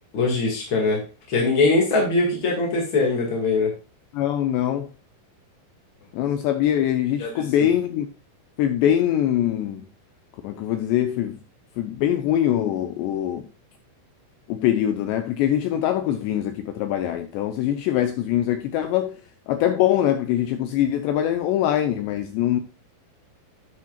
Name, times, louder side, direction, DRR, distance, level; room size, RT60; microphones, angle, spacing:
voice 1, 0.1-1.0 1.3-3.7 7.2-7.7, left 3 dB, 50° left, 1.5 m, -22 dB
voice 2, 4.1-4.9 6.1-8.1 8.6-9.8 10.4-11.4 11.8-13.5 14.5-19.1 19.5-22.6, left 11 dB, 85° left, 2.6 m, -23 dB
10.5 x 9.6 x 2.4 m
omnidirectional pair, 5.8 m